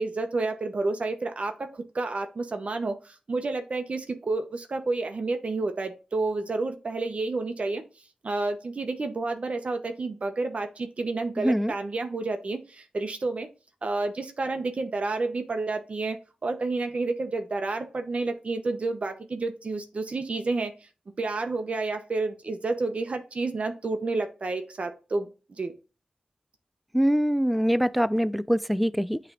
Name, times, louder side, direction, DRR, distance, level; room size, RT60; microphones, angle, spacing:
voice 1, 0.0-7.8 8.2-13.5 13.8-16.2 16.4-20.7 21.2-25.7, right 3 dB, 60° right, 0.9 m, -30 dB
voice 2, 11.4-11.7 26.9-29.2, equal, ahead, 0.3 m, -24 dB
8.6 x 3.3 x 3.8 m
wide cardioid pair, 65°, 2 cm